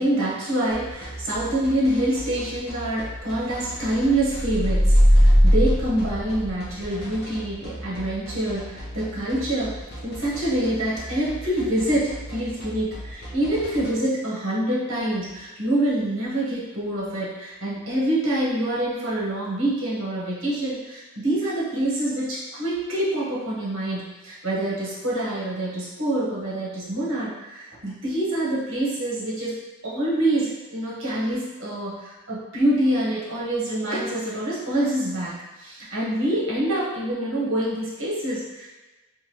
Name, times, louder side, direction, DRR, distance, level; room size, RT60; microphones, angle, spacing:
voice 1, 0.0-29.5 29.8-38.7, right 1 dB, 60° right, -7 dB, 1.2 m, -26 dB
sound 1, 0.7-13.9, equal, 45° left, 0.7 m, -38 dB
sound 2, 4.3-6.9, equal, 30° left, 1.4 m, -18 dB
3.6 x 2.6 x 3.0 m, 1.1 s
head